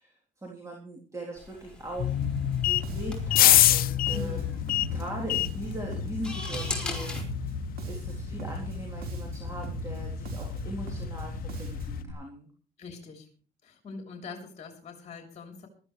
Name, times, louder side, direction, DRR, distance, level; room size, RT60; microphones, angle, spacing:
voice 1, 0.0-2.2 2.4-7.2 7.5-12.5, right 1 dB, 20° right, -1 dB, 3.4 m, -40 dB
sound 1, 1.4-7.2, left 2 dB, 5° left, 5.4 m, -40 dB
sound 2, 2.0-12.0, left 13 dB, 60° left, 0.5 m, -28 dB
Bass guitar, 2.2-12.1, right 3 dB, 60° right, 4.3 m, -39 dB
voice 2, 4.1-4.6 12.8-13.3 13.6-15.7, left 4 dB, 40° left, 3 dB, 3.5 m, -42 dB
19.5 x 13.0 x 3.3 m, 0.39 s
cardioid pair, 110°, 17 cm